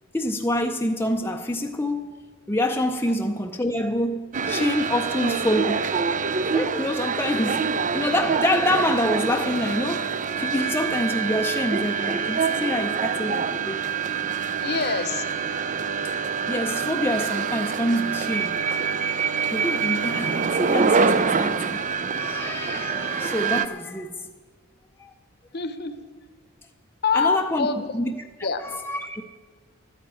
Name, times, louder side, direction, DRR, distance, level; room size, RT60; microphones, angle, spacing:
voice 1, 0.1-5.9 6.5-13.8 16.5-18.6 19.5-21.9 22.2-24.3 25.0-25.1 27.1-27.7 27.9-28.1 28.6-29.2, left 1 dB, 10° left, 0.6 m, -26 dB
sound 1, 4.3-23.7, right 5 dB, 35° right, 0.5 m, -25 dB
voice 2, 14.6-15.2 25.5-25.9 27.0-27.9 28.4-28.6, left 5 dB, 50° left, 1.0 m, -25 dB
12.5 x 9.4 x 9.1 m
head